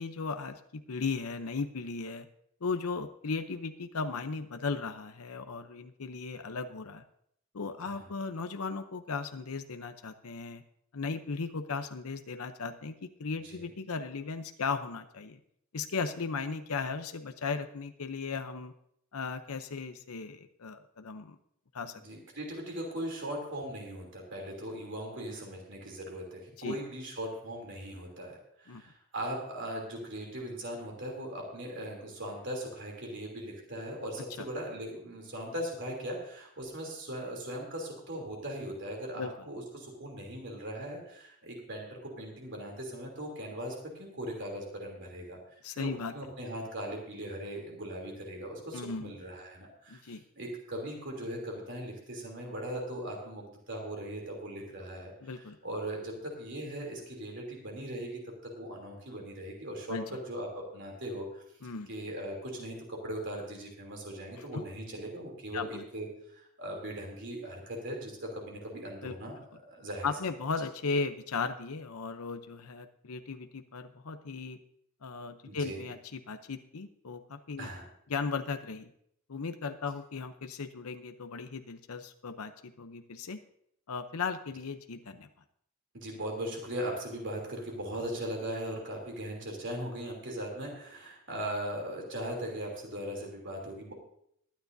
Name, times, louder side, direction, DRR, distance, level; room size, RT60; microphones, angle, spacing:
voice 1, 0.0-2.3 2.6-7.0 7.5-10.6 10.9-15.4 15.7-18.7 19.1-21.4 21.7-22.0 26.6-26.7 28.7-28.8 34.4-34.5 39.2-39.3 45.6-46.1 48.7-49.1 49.9-50.2 55.2-55.6 59.9-60.0 61.6-61.9 65.5-65.8 69.0-69.1 70.0-74.6 75.0-77.7 78.1-78.9 79.3-83.4 83.9-85.3, left 4 dB, 80° left, 8 dB, 0.7 m, -36 dB
voice 2, 22.0-45.4 45.7-61.4 61.9-70.1 75.5-75.8 77.6-77.9 85.9-93.9, right 1 dB, 55° right, 0 dB, 3.1 m, -39 dB
21.5 x 9.6 x 2.7 m, 0.71 s
head